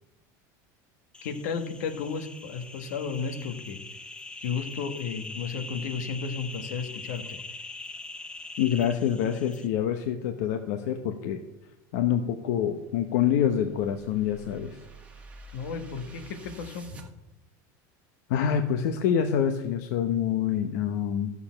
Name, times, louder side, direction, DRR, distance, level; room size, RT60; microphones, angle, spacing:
sound 1, 1.1-9.7, left 3 dB, 10° left, 0.7 m, -42 dB
voice 1, 1.2-3.8 4.4-7.4 15.5-16.9, left 5 dB, 90° left, 7 dB, 1.5 m, -33 dB
voice 2, 8.6-11.4 11.9-14.7 18.3-21.3, left 9 dB, 70° left, 6 dB, 0.9 m, -26 dB
sound 2, 13.0-17.1, right 2 dB, 15° right, 1.4 m, -48 dB
13.0 x 7.0 x 5.8 m, 0.96 s
cardioid pair, 160°, 9 cm